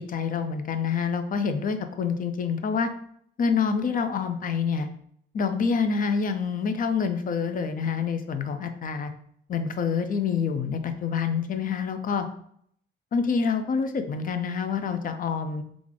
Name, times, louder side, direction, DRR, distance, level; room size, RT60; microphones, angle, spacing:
voice 1, 0.1-2.9 3.4-4.9 5.3-9.1 9.5-12.3 13.1-15.6, left 5 dB, 45° left, 8 dB, 0.4 m, -27 dB
3.2 x 2.4 x 3.7 m, 0.66 s
cardioid pair, 90°, 20 cm